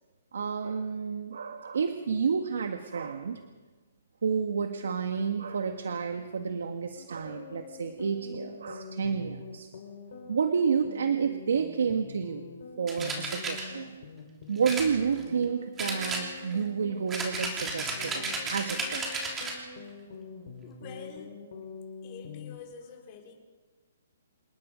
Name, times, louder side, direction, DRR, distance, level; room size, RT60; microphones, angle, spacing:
voice 1, 0.3-3.4 4.2-9.7 10.3-12.5 12.8-14.0 14.5-19.3, right 6 dB, 80° right, 6 dB, 1.6 m, -30 dB
sound 1, 6.9-22.6, left 5 dB, 50° left, 4.7 m, -45 dB
sound 2, 12.9-13.6 14.6-15.4 15.8-16.6 17.1-19.6, right 3 dB, 10° right, 3.1 m, -33 dB
voice 2, 20.6-21.4 22.0-23.3, left 6 dB, 25° left, 1 dB, 4.1 m, -46 dB
27.5 x 20.0 x 5.2 m, 1.3 s
hypercardioid pair, 170°, 0 cm